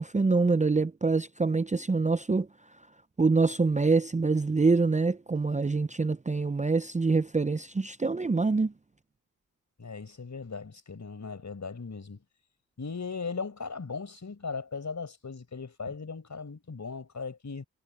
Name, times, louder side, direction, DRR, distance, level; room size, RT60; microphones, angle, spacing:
voice 1, 0.0-2.5 3.2-8.7, right 4 dB, 20° right, 0.6 m, -25 dB
voice 2, 9.8-12.2 12.8-17.6, left 4 dB, 50° left, 5.3 m, -38 dB
supercardioid pair, 40°, 37 cm